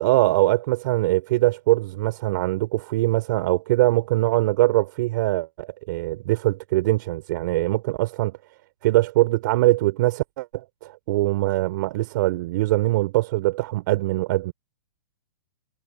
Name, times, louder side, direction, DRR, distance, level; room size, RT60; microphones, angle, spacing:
voice 1, 0.0-8.4 8.8-14.5, right 18 dB, 50° right, 4.6 m, -22 dB
hypercardioid pair, 145°, 14 cm